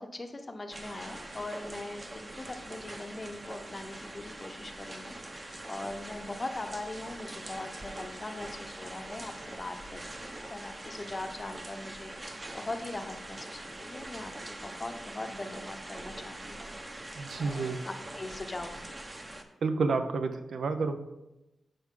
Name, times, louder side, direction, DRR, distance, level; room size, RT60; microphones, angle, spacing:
voice 1, 0.0-16.6 17.4-18.9, left 2 dB, 30° left, 6 dB, 0.7 m, -41 dB
sound 1, 0.7-19.4, right 1 dB, 25° right, 0.8 m, -43 dB
voice 2, 17.2-17.8 19.6-21.0, right 4 dB, 75° right, 8 dB, 0.6 m, -30 dB
12.0 x 4.7 x 3.7 m, 0.97 s
wide cardioid pair, 105°, 0 cm